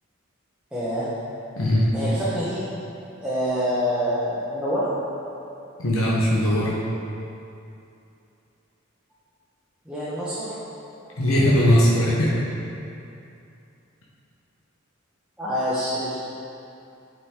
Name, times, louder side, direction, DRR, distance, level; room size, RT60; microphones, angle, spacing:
voice 1, 0.7-1.1 1.9-2.6 3.2-4.9 9.9-10.5 15.4-16.2, equal, 5° right, -12 dB, 1.0 m, -26 dB
voice 2, 1.6-1.9 5.8-6.8 11.2-12.4, equal, 80° left, -6 dB, 1.0 m, -19 dB
8.0 x 5.6 x 3.7 m, 2.7 s
head